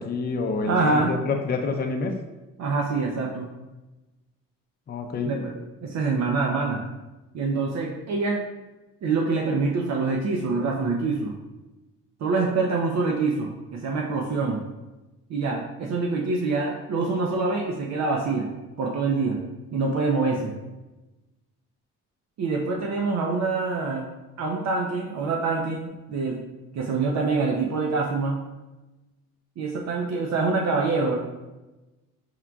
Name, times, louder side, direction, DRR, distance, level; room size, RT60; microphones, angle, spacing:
voice 1, 0.0-2.1 4.9-5.3, left 4 dB, 35° left, 3 dB, 0.5 m, -27 dB
voice 2, 0.7-1.1 2.6-3.5 5.2-5.5 5.8-6.8 7.3-8.4 9.0-11.3 12.2-14.6 15.3-18.5 18.8-19.4 19.7-20.5 22.4-24.0 24.4-26.4 26.7-28.4 29.6-31.2, right 3 dB, 60° right, 0 dB, 0.6 m, -25 dB
4.6 x 3.6 x 2.3 m, 1.1 s
cardioid pair, 90°, 30 cm